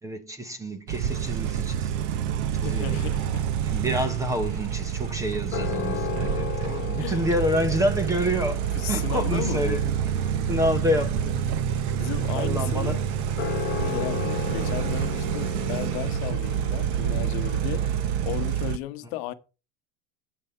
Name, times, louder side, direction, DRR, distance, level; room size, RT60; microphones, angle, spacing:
voice 1, 0.0-1.9 2.6-3.1 3.6-9.9 10.5-11.4 12.3-13.0 13.8-14.1, equal, 10° right, 0.7 m, -28 dB
sound 1, 0.9-18.8, right 9 dB, 40° right, 0.8 m, -27 dB
voice 2, 2.6-3.5 7.0-7.2 8.7-9.8 12.0-13.0 13.8-19.3, left 14 dB, 60° left, 1.1 m, -34 dB
sound 2, 4.5-18.3, left 11 dB, 30° left, 2.9 m, -37 dB
sound 3, 7.4-17.9, left 3 dB, 10° left, 5.2 m, -56 dB
10.5 x 7.7 x 5.5 m
cardioid pair, 175°, 35 cm